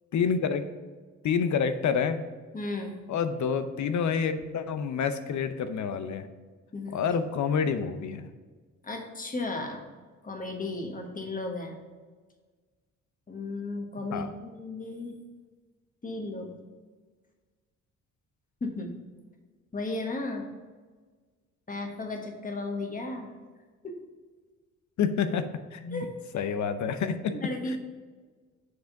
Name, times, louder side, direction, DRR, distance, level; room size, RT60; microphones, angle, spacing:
voice 1, 0.1-0.7 1.2-2.3 3.1-6.3 6.9-8.3 14.1-14.3 25.0-26.1 26.3-27.8, left 6 dB, 65° left, 10 dB, 0.7 m, -28 dB
voice 2, 2.5-3.0 6.7-7.0 8.8-9.8 10.2-11.8 13.3-15.2 16.0-16.5 18.6-18.9 19.7-20.5 21.7-23.3 23.8-24.0 25.9-26.5 27.3-27.8, left 2 dB, 25° left, 2 dB, 1.4 m, -35 dB
7.8 x 3.5 x 5.7 m, 1.4 s
cardioid pair, 65°, 31 cm